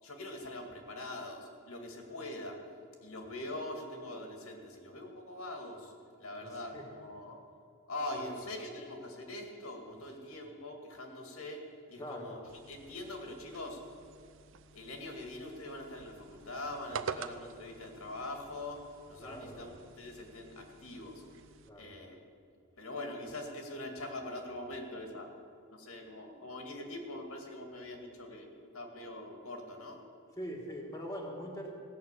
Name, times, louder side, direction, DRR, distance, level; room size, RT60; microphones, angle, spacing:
voice 1, 0.0-2.6 3.0-5.9 6.2-7.4 7.9-13.8 14.7-19.7 20.0-21.2 21.8-22.2 22.8-25.3 25.7-30.0, left 1 dB, 80° left, 3 dB, 2.1 m, -43 dB
voice 2, 6.4-6.9 8.1-8.3 11.9-12.4 19.2-19.7 21.6-21.9 30.4-31.7, equal, 15° left, -2 dB, 1.5 m, -43 dB
sound 1, 12.5-21.7, right 5 dB, 60° right, 0.6 m, -47 dB
17.0 x 6.6 x 8.3 m, 2.4 s
head